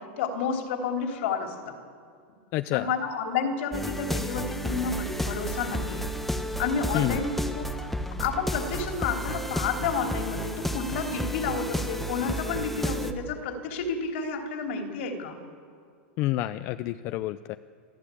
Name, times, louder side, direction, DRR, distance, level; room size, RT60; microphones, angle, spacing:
voice 1, 0.0-1.7 2.7-6.1 6.6-7.7 8.2-15.4, left 5 dB, 65° left, 3 dB, 3.3 m, -30 dB
voice 2, 2.5-2.9 6.9-7.2 16.2-17.6, left 15 dB, 40° left, 11 dB, 0.5 m, -28 dB
sound 1, 3.7-13.1, equal, ahead, 0.9 m, -32 dB
29.0 x 12.0 x 8.5 m, 2.2 s
supercardioid pair, 155°, 7 cm